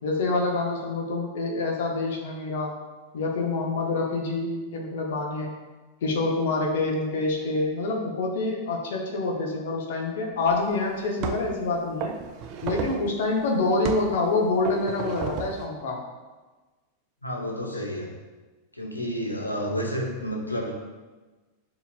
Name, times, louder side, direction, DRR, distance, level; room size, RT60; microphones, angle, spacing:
voice 1, 0.0-2.7 3.1-5.5 6.0-12.1 12.6-16.0, left 3 dB, 55° left, 0 dB, 0.9 m, -26 dB
sound 1, 10.5-10.6 11.2-11.6 12.0-13.1 13.8-14.2 14.6-15.7, right 6 dB, 40° right, 0.4 m, -32 dB
voice 2, 17.2-18.1 18.7-20.7, equal, 85° left, 0 dB, 0.7 m, -30 dB
6.8 x 3.0 x 2.4 m, 1.2 s
figure-of-eight pair, 90°, 0 cm